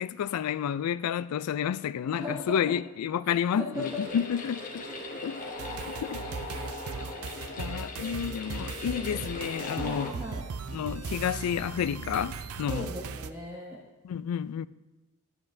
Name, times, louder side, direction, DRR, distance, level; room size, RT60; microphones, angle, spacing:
voice 1, 0.0-4.8 5.2-5.4 5.9-6.3 7.6-10.1 10.7-12.9 14.0-14.7, left 8 dB, 85° left, 0.3 m, -30 dB
voice 2, 2.1-2.8 3.2-4.0 5.9-6.0 9.7-10.4 12.7-13.8, left 1 dB, 10° right, 1.0 m, -38 dB
sound 1, 3.7-10.1, left 2 dB, 40° left, 1.1 m, -39 dB
sound 2, 5.6-13.3, right 5 dB, 80° right, 0.5 m, -38 dB
10.5 x 9.5 x 2.6 m
head